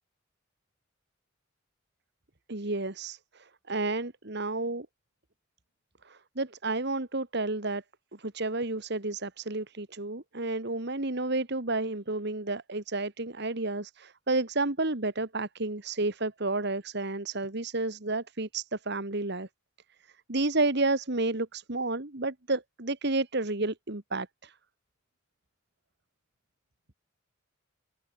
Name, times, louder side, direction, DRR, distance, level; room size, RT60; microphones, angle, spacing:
voice 1, 2.5-4.9 6.1-7.8 8.2-19.5 20.3-24.5, right 2 dB, 55° right, 2.0 m, -31 dB
head